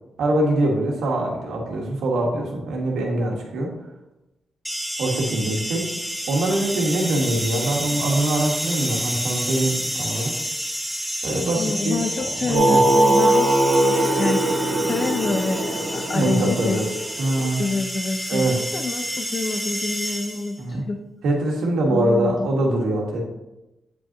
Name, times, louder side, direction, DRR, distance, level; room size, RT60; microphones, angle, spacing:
voice 1, 0.2-3.7 5.0-5.9 6.3-10.3 11.2-12.8 16.1-16.9 17.2-17.6 18.3-18.6 20.6-20.8 21.2-23.2, right 1 dB, 85° right, 0 dB, 1.5 m, -23 dB
sound 1, 4.6-20.6, equal, 5° left, 1.2 m, -30 dB
voice 2, 11.6-21.0 21.9-22.5, left 3 dB, 45° left, 4 dB, 0.5 m, -27 dB
Singing, 12.5-17.3, right 1 dB, 65° right, 1.3 m, -20 dB
7.8 x 5.2 x 2.9 m, 0.97 s
cardioid pair, 70°, 0 cm